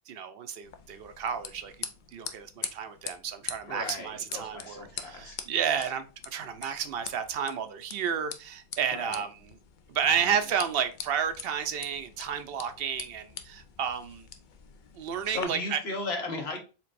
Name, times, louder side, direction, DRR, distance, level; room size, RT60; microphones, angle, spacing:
voice 1, 0.1-9.4 9.9-14.3 14.9-15.8, right 8 dB, 70° right, 0.7 m, -31 dB
sound 1, 0.6-15.5, left 8 dB, 60° left, 0.6 m, -44 dB
voice 2, 3.6-5.9 8.9-9.2 10.0-10.6 15.2-16.6, left 3 dB, 80° left, 1.3 m, -37 dB
4.4 x 3.6 x 2.5 m
omnidirectional pair, 1.1 m